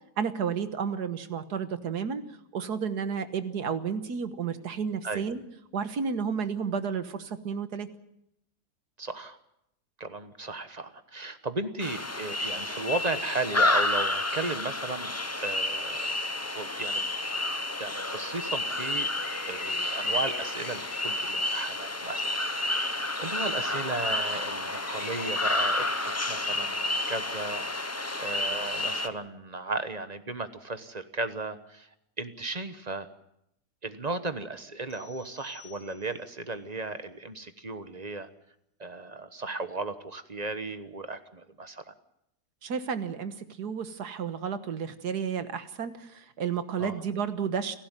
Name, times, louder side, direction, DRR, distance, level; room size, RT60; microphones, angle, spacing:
voice 1, 0.2-2.2 2.5-5.4 5.7-7.9 42.6-47.8, right 6 dB, 80° right, 10 dB, 1.9 m, -32 dB
voice 2, 9.0-9.4 10.0-15.1 15.4-16.1 16.4-17.0 17.7-27.9 28.2-31.9 32.2-33.1 33.8-38.3 38.8-41.9 46.8-47.0, right 3 dB, 30° right, 10 dB, 1.2 m, -35 dB
sound 1, 11.8-29.1, left 2 dB, 15° left, 0.6 m, -30 dB
sound 2, 18.9-21.9 24.7-26.3, left 4 dB, 65° left, 2.3 m, -47 dB
sound 3, 34.9-36.4, left 7 dB, 90° left, 2.8 m, -55 dB
29.5 x 12.0 x 9.3 m, 0.83 s
omnidirectional pair, 1.7 m